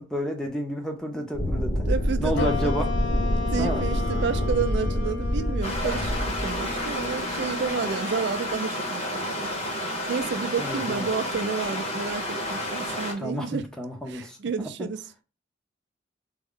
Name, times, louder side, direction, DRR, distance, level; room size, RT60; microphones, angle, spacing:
voice 1, 0.0-1.9 2.2-2.9 3.6-3.8 10.6-11.1 13.2-14.9, equal, 5° left, 0.5 m, -31 dB
sound 1, 1.3-7.7, equal, 50° left, 0.9 m, -27 dB
voice 2, 1.9-2.7 3.5-9.5 9.8-13.6 14.1-15.1, right 5 dB, 60° right, 0.3 m, -31 dB
sound 2, 2.4-9.0, left 5 dB, 80° left, 0.5 m, -35 dB
sound 3, 5.6-13.1, left 1 dB, 35° left, 1.1 m, -31 dB
3.6 x 2.1 x 3.5 m
head